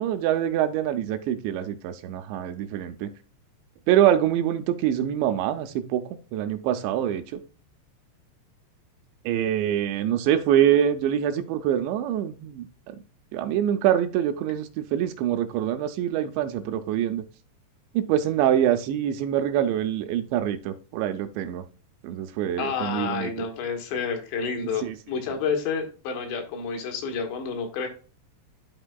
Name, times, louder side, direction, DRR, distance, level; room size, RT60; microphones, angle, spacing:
voice 1, 0.0-3.1 3.9-6.0 6.3-7.4 9.3-13.0 13.3-17.3 17.9-21.6 22.0-23.5 24.8-25.0, right 10 dB, 80° right, 8 dB, 2.8 m, -25 dB
voice 2, 22.6-27.9, left 5 dB, 75° left, 3 dB, 3.3 m, -29 dB
12.0 x 4.4 x 2.2 m, 0.36 s
omnidirectional pair, 5.2 m